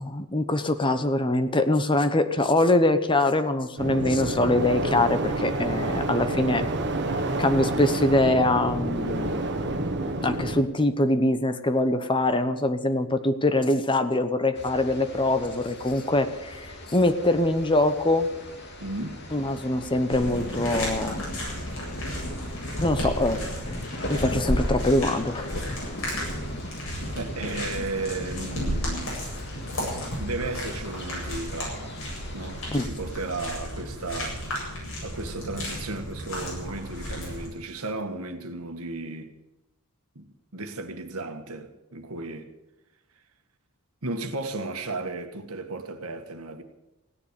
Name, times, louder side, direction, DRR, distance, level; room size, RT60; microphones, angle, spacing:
voice 1, 0.0-6.6 7.4-9.6 10.2-18.3 19.3-21.3 22.8-25.5 32.7-32.9, left 2 dB, 20° left, 0.9 m, -24 dB
sound 1, 3.8-10.6, right 2 dB, 55° right, 1.5 m, -28 dB
sound 2, 14.5-32.9, left 1 dB, 50° left, 2.7 m, -39 dB
voice 2, 18.8-19.2 27.1-29.3 30.2-32.0 32.3-34.4 35.0-39.3 40.1-40.3 40.5-42.5 44.0-46.6, right 2 dB, 75° right, 1.7 m, -34 dB
sound 3, 20.1-37.5, equal, 65° left, 8.0 m, -33 dB
16.5 x 10.0 x 8.4 m
head